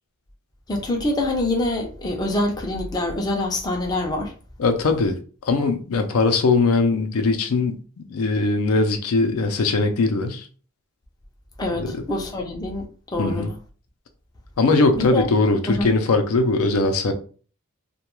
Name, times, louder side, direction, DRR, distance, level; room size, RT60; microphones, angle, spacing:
voice 1, 0.7-4.3 11.6-12.9 13.1-13.5 14.9-15.3 15.7-15.9, left 2 dB, 20° left, 0.4 m, -25 dB
voice 2, 4.6-5.2 5.5-7.8 8.1-10.5 11.8-12.0 13.2-13.5 14.6-17.1, left 3 dB, 70° left, 0.5 m, -20 dB
2.3 x 2.2 x 3.0 m
head